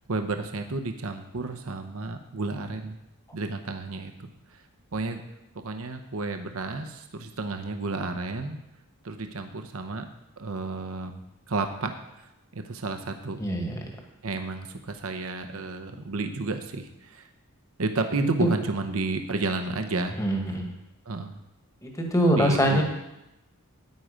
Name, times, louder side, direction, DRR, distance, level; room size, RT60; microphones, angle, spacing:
voice 1, 0.1-3.0 3.3-4.6 4.9-5.2 5.5-8.6 9.0-10.1 10.4-11.2 11.5-13.4 14.2-17.3 17.8-20.2 21.1-21.4 22.3-22.8, right 3 dB, 65° right, 6 dB, 0.8 m, -31 dB
voice 2, 13.4-13.9 18.4-18.5 20.2-20.7 21.8-22.8, equal, 15° left, 2 dB, 1.5 m, -23 dB
9.5 x 9.2 x 5.1 m, 0.91 s
head